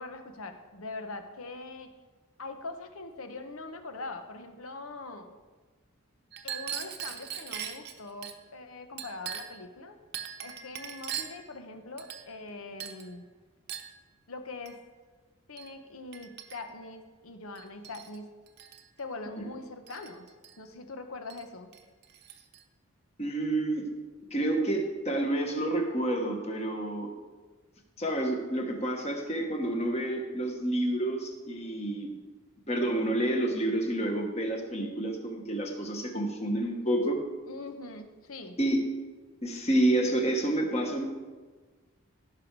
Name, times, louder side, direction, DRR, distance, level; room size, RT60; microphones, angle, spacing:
voice 1, 0.0-1.9 2.4-5.3 6.4-10.0 10.4-13.3 14.3-14.8 15.5-18.3 19.0-20.3 20.6-21.7 37.5-38.6, left 3 dB, 85° left, 7 dB, 1.1 m, -42 dB
Chink clink, 6.3-8.4 9.0-9.6 10.1-11.5 12.0-12.5 12.8-13.1 13.7-14.0 14.6-14.8 15.6-15.7 16.1-16.8 17.5-18.2 18.5-18.8 19.9-20.5 21.3-21.4 21.7-22.6, right 9 dB, 50° right, 0.8 m, -40 dB
voice 2, 23.2-23.9 24.3-27.1 28.0-32.1 32.7-37.2 38.6-38.8 39.4-41.0, right 1 dB, 30° left, 3 dB, 1.3 m, -29 dB
16.5 x 5.8 x 4.7 m, 1.3 s
head